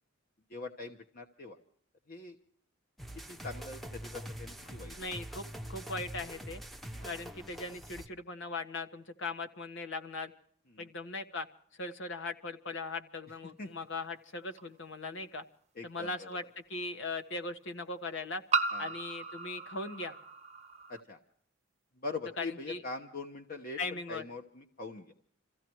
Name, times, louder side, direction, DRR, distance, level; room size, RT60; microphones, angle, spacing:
voice 1, 0.5-1.6 2.1-2.4 3.3-4.9 6.9-7.2 10.7-10.9 13.3-13.8 15.0-15.3 15.7-16.3 18.7-18.9 20.9-21.2 22.0-25.1, left 3 dB, 45° left, 4 dB, 1.2 m, -43 dB
sound 1, 3.0-8.1, right 1 dB, ahead, 0.8 m, -44 dB
voice 2, 5.0-6.6 7.0-10.3 10.8-11.5 11.8-15.4 15.8-16.4 16.7-18.4 18.8-20.2 22.4-22.8 23.8-24.2, left 3 dB, 65° left, 8 dB, 1.6 m, -39 dB
sound 2, 14.6-14.7 16.3-16.4 18.5-21.0, right 4 dB, 35° right, 0.9 m, -35 dB
28.5 x 15.5 x 3.1 m, 0.62 s
head